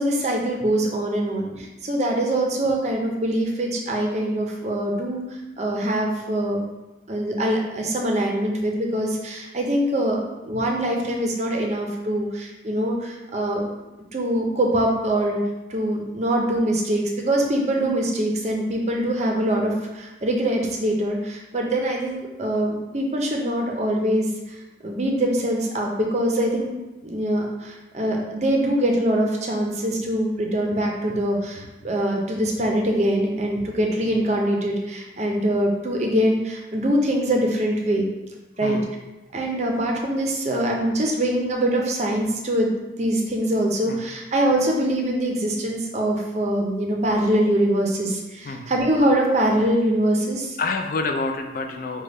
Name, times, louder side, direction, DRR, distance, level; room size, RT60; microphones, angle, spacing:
voice 1, 0.0-5.2 5.6-6.6 7.1-13.6 14.1-15.4 15.7-24.3 24.8-26.7 27.0-38.1 38.6-38.8 39.3-42.7 43.0-50.6, right 1 dB, 35° right, 0 dB, 0.5 m, -23 dB
voice 2, 48.4-48.8 50.6-52.0, left 3 dB, 50° left, 4 dB, 0.3 m, -27 dB
5.1 x 2.2 x 3.3 m, 1.0 s
head